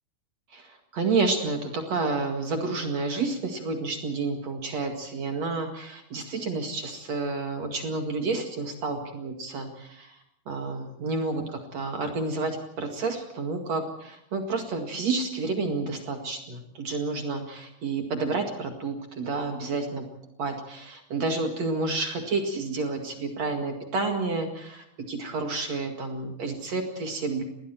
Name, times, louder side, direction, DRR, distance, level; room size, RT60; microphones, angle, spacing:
voice 1, 0.5-10.2 10.5-20.0 20.4-27.4, right 3 dB, 55° right, 4 dB, 3.1 m, -30 dB
28.5 x 21.0 x 4.5 m, 0.76 s
omnidirectional pair, 3.7 m